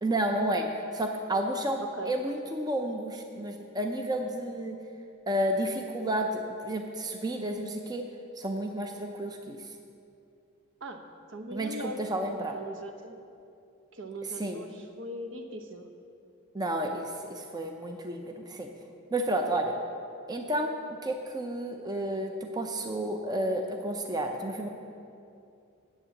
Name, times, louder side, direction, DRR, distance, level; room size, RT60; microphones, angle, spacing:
voice 1, 0.0-4.8 5.3-8.0 8.4-9.6 11.5-12.6 14.4-14.6 16.5-18.7 19.1-19.8 20.3-20.7 21.0-24.7, right 1 dB, 20° right, 3 dB, 0.6 m, -31 dB
voice 2, 1.8-2.2 10.8-12.0 12.5-13.1 13.9-15.9, right 1 dB, 60° right, 6 dB, 0.9 m, -40 dB
9.9 x 8.5 x 7.0 m, 2.6 s
head